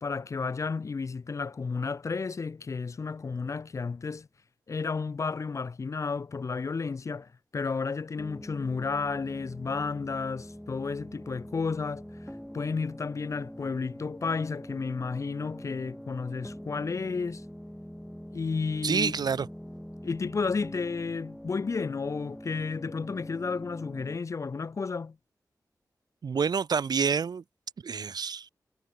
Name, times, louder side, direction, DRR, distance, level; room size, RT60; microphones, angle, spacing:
voice 1, 0.0-4.3 4.7-12.0 12.5-17.4 18.3-19.1 20.0-25.2, left 4 dB, 50° left, 0.5 m, -32 dB
sound 1, 8.2-24.2, equal, 5° left, 5.9 m, -44 dB
voice 2, 18.8-19.5 26.2-27.4 27.8-28.5, right 6 dB, 80° right, 1.0 m, -28 dB
wide cardioid pair, 85°, 7 cm